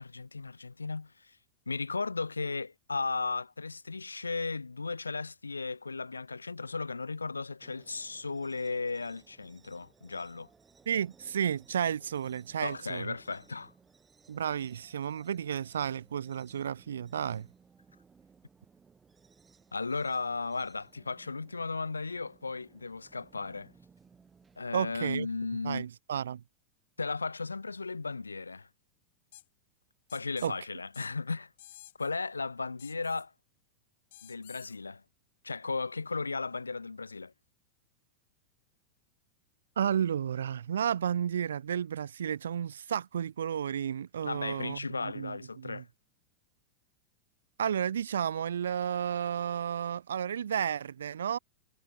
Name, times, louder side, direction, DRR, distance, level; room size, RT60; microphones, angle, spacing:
voice 1, 0.0-1.4 1.7-10.5 12.6-13.7 19.7-23.7 24.6-25.8 27.0-28.7 30.1-31.5 32.0-33.3 34.2-35.0 35.4-37.3 44.2-45.9, left 4 dB, 80° left, 1.0 m, -35 dB
sound 1, 7.6-24.7, right 5 dB, 15° right, 6.2 m, -62 dB
voice 2, 10.9-13.1 14.3-17.5 24.7-25.3 25.6-26.4 30.4-30.5 39.8-45.8 47.6-51.4, right 8 dB, 65° right, 1.2 m, -32 dB
sound 2, 29.3-29.4 30.1-30.5 30.9-31.1 31.6-32.1 32.8-33.2 34.1-34.8, left 15 dB, 55° left, 2.0 m, -52 dB
figure-of-eight pair, 90°, 0 cm